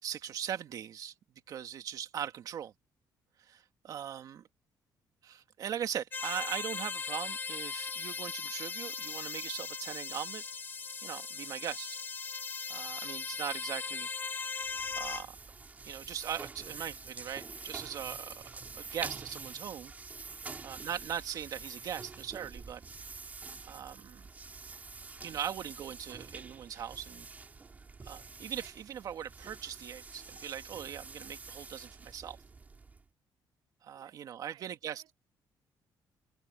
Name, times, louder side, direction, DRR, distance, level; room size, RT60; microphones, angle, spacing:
voice 1, 0.0-1.1 1.5-2.7 3.4-4.4 5.2-10.4 11.0-12.0 12.7-14.1 14.9-15.4 15.8-18.3 18.8-19.9 20.6-22.8 23.6-24.2 25.2-27.3 28.0-32.4 33.8-35.0, right 9 dB, 50° right, 2.3 m, -40 dB
sound 1, 6.1-15.3, left 5 dB, 25° left, 0.9 m, -38 dB
sound 2, 14.6-33.1, right 4 dB, 20° right, 3.6 m, -47 dB
voice 2, 18.1-18.5 20.4-20.7 33.9-35.1, right 13 dB, 85° right, 6.6 m, -63 dB
cardioid pair, 180°, 8 cm